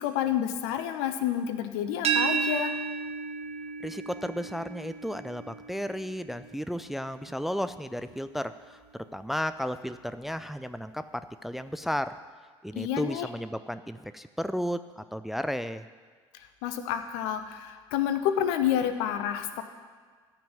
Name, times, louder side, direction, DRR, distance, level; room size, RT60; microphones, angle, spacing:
voice 1, 0.0-2.8 12.7-13.3 16.6-19.6, left 10 dB, 65° left, 8 dB, 1.0 m, -29 dB
sound 1, 2.0-7.8, right 6 dB, 45° right, 1.2 m, -33 dB
voice 2, 3.8-8.8 9.1-12.2 12.6-15.9, equal, ahead, 12 dB, 0.5 m, -33 dB
13.5 x 6.0 x 8.9 m, 1.6 s
figure-of-eight pair, 55°, 15 cm